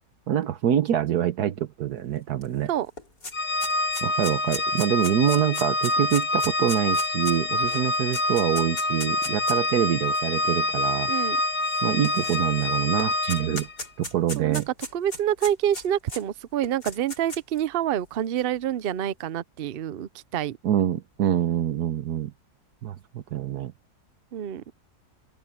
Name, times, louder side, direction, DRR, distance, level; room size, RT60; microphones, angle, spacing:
voice 1, 0.3-2.7 4.0-11.1 11.8-13.7 14.0-14.7 20.6-22.3 22.8-23.7, right 10 dB, 75° right, 1.4 m, -25 dB
sound 1, 2.4-2.5 2.8-9.7 10.5-10.6 11.6-12.7 13.0-16.2 16.6-17.6, left 2 dB, 75° left, 6.3 m, -37 dB
Organ, 3.3-13.7, left 2 dB, 30° left, 1.2 m, -26 dB
voice 2, 14.9-20.6 24.3-24.6, right 10 dB, 55° right, 0.6 m, -27 dB
open air
omnidirectional pair, 1.7 m